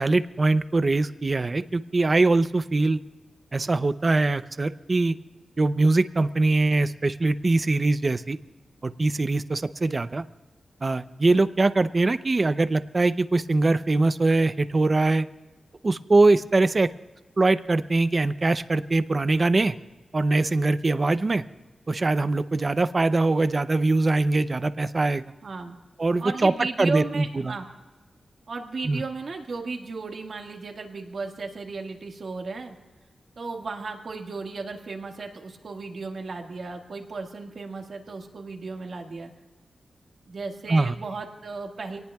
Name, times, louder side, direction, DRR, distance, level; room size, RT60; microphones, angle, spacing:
voice 1, 0.0-3.0 3.5-5.2 5.6-8.4 8.8-10.2 10.8-15.3 15.8-16.9 17.4-19.8 20.1-21.4 21.9-25.2 26.0-26.5 26.8-27.5 28.8-29.0 40.7-40.9, right 2 dB, 35° right, 12 dB, 0.6 m, -22 dB
voice 2, 25.4-25.8 26.2-27.6 28.5-32.7 33.4-39.3 40.3-42.0, right 4 dB, 65° right, 3 dB, 1.7 m, -35 dB
26.0 x 18.5 x 2.3 m, 1.3 s
wide cardioid pair, 115°, 0 cm